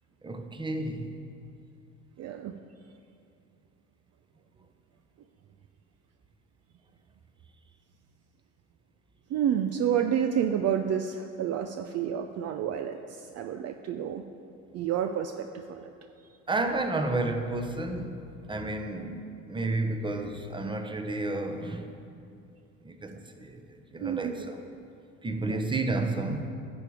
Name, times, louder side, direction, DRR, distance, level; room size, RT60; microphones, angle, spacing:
voice 1, 0.2-1.2 16.5-22.0 22.8-23.6 23.9-24.6 25.2-26.5, right 2 dB, 15° right, 6 dB, 0.9 m, -31 dB
voice 2, 2.2-2.5 9.3-14.2 14.7-15.9 24.0-24.3 25.5-25.6, right 9 dB, 45° right, 7 dB, 0.5 m, -29 dB
11.0 x 6.9 x 4.8 m, 2.6 s
hypercardioid pair, 70°, 35 cm